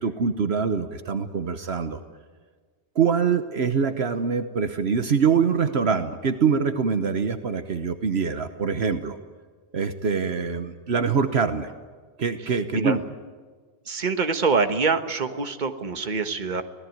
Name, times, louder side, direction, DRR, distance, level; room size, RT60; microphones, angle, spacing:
voice 1, 0.0-2.0 2.9-9.2 9.7-11.7 12.2-13.0, right 6 dB, 70° right, 9 dB, 1.3 m, -24 dB
voice 2, 13.9-16.6, right 4 dB, 45° right, 8 dB, 1.5 m, -25 dB
25.0 x 18.0 x 9.4 m, 1.5 s
omnidirectional pair, 1.1 m